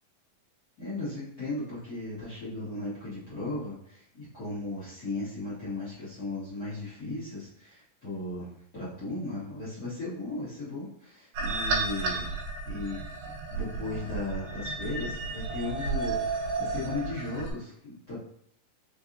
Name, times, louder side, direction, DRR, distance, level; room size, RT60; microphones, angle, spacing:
voice 1, 0.8-12.3 12.6-13.0 13.5-18.2, left 2 dB, 60° left, -12 dB, 0.9 m, -36 dB
sound 1, 11.3-17.5, right 3 dB, 75° right, 2.3 m, -32 dB
5.1 x 2.8 x 2.5 m, 0.69 s
omnidirectional pair, 4.0 m